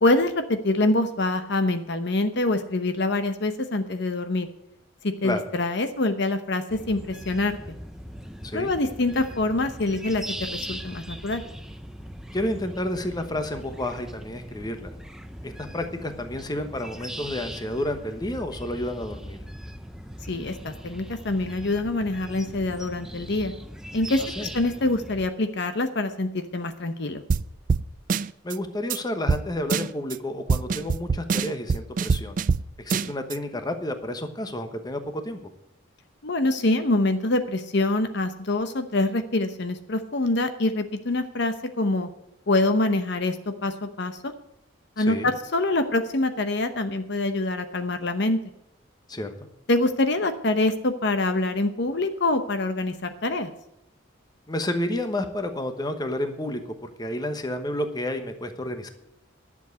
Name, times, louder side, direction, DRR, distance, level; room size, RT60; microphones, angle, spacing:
voice 1, 0.0-4.5 5.0-7.6 8.5-11.4 20.3-23.5 23.9-27.2 36.2-42.1 42.5-44.3 45.0-48.4 49.7-53.5, left 2 dB, 60° left, 9 dB, 0.9 m, -25 dB
sound 1, 6.7-25.3, equal, 5° right, 0.7 m, -40 dB
voice 2, 12.3-14.9 15.4-19.4 24.4-24.5 28.4-32.4 32.8-35.4 45.0-45.3 49.1-49.3 54.5-58.9, left 1 dB, 20° left, 7 dB, 1.1 m, -30 dB
sound 2, 27.3-27.4 27.7-27.8 28.1-28.5 28.9-29.0 29.3-29.4 29.7-30.1 30.5-32.6 32.9-33.3, right 5 dB, 45° right, 0.3 m, -24 dB
11.5 x 7.3 x 7.9 m, 0.81 s
head